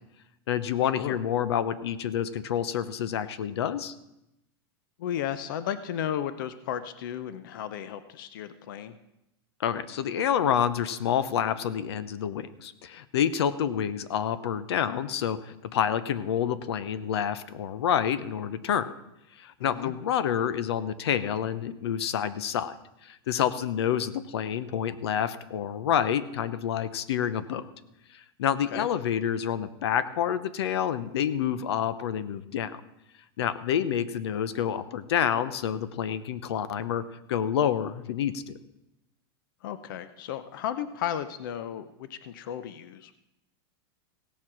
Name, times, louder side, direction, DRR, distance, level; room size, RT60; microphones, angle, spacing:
voice 1, 0.5-3.9 9.6-18.9 19.4-22.7 23.0-27.6 28.1-32.8 33.4-37.0 37.3-38.5, left 9 dB, 85° left, 15 dB, 0.8 m, -28 dB
voice 2, 5.0-9.0 19.6-19.9 28.7-28.9 39.6-43.1, left 10 dB, 55° left, 13 dB, 0.7 m, -34 dB
16.5 x 7.3 x 6.1 m, 0.87 s
supercardioid pair, 180°, 13 cm